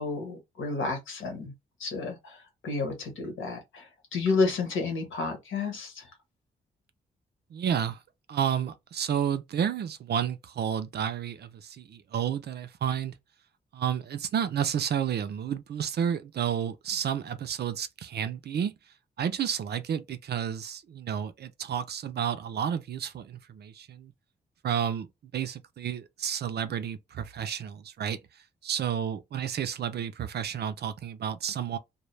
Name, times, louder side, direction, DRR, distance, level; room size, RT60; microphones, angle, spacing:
voice 1, 0.0-1.5 1.8-6.1, left 4 dB, 75° left, 1.0 m, -31 dB
voice 2, 7.5-8.0 8.3-13.1 13.7-18.7 19.2-24.1 24.6-25.1 25.3-28.2 28.6-31.8, right 8 dB, 55° right, 0.4 m, -31 dB
2.1 x 2.0 x 3.1 m
supercardioid pair, 45°, 20 cm